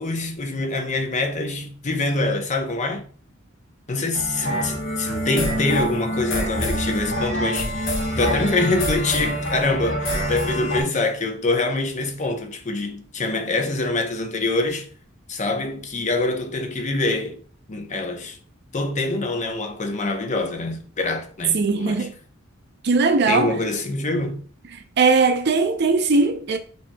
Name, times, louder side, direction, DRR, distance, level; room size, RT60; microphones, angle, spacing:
voice 1, 0.0-3.1 3.9-14.9 15.3-17.4 17.7-18.4 18.7-22.1 23.3-24.4, left 2 dB, 35° left, 0.7 m, -25 dB
sound 1, 4.1-10.8, equal, 70° left, 1.4 m, -25 dB
voice 2, 21.5-22.1 22.8-23.6 25.0-26.6, right 4 dB, 55° right, 0.6 m, -19 dB
8.0 x 2.9 x 2.2 m
head